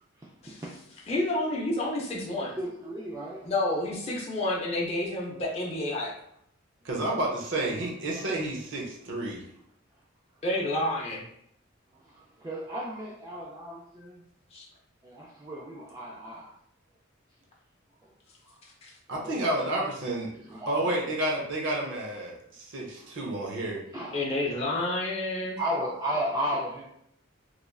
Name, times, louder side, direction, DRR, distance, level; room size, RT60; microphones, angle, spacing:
voice 1, 0.2-0.8 2.3-3.5 7.8-8.2 11.9-14.3 15.0-16.5 18.0-18.1 18.4-18.6 19.1-19.8 20.3-20.9 22.9-23.2 23.9-24.2 25.6-26.8, equal, 20° right, -5 dB, 0.3 m, -35 dB
voice 2, 1.1-2.6 3.4-6.1 10.4-11.2 14.5-14.6 18.8-18.9 24.1-25.6, left 1 dB, 30° left, -3 dB, 0.6 m, -29 dB
voice 3, 6.8-9.4 19.1-20.3 20.7-23.8, right 1 dB, 65° right, -2 dB, 0.6 m, -30 dB
3.0 x 2.4 x 2.2 m, 0.72 s
head